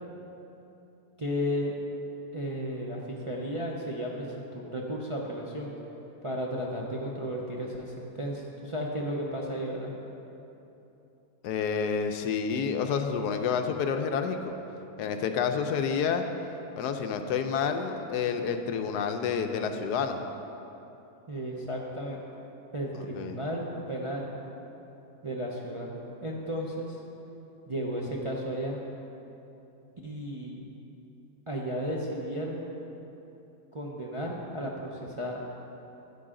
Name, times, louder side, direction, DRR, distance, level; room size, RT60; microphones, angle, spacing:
voice 1, 1.2-1.7 2.3-5.7 6.2-9.9 21.3-22.2 22.7-24.3 25.2-26.0 26.2-27.0 27.7-28.8 30.0-30.6 31.5-32.7 33.7-35.4, equal, 35° right, -2 dB, 0.5 m, -34 dB
voice 2, 11.4-14.5 15.0-16.2 16.8-20.2 23.0-23.3, left 6 dB, 80° left, 6 dB, 1.2 m, -29 dB
11.0 x 9.4 x 3.8 m, 3.0 s
omnidirectional pair, 1.7 m